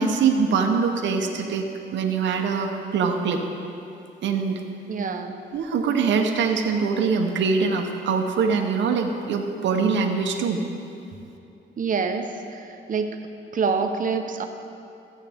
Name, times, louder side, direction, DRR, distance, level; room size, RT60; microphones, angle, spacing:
voice 1, 0.0-1.7 1.9-3.4 4.2-4.6 5.5-10.6, right 5 dB, 70° right, 3 dB, 0.9 m, -23 dB
voice 2, 4.9-5.4 11.8-13.2 13.5-14.4, right 5 dB, 40° right, 5 dB, 0.9 m, -26 dB
14.0 x 8.2 x 3.5 m, 2.7 s
cardioid pair, 90°, 20 cm